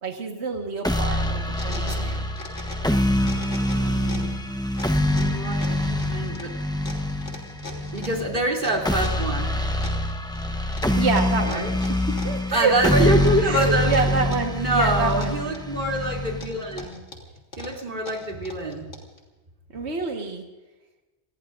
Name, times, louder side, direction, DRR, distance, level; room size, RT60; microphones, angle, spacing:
voice 1, 0.0-2.2 11.0-12.9 13.4-15.4 19.7-20.4, right 4 dB, 70° right, 3 dB, 1.8 m, -27 dB
sound 1, 0.8-16.8, left 1 dB, 5° left, 0.9 m, -25 dB
sound 2, 1.2-2.9 3.2-4.4 4.8-9.3 9.8-10.4 10.7-12.8 13.2-14.6 14.8-15.8 16.3-19.2, left 2 dB, 80° left, 3.1 m, -40 dB
voice 2, 3.7-4.4 5.1-6.5 7.9-9.6 11.4-11.7 12.5-14.1 14.5-17.0 17.6-18.9, right 1 dB, 45° right, 0 dB, 3.1 m, -26 dB
28.5 x 19.5 x 2.6 m, 1.2 s
omnidirectional pair, 1.2 m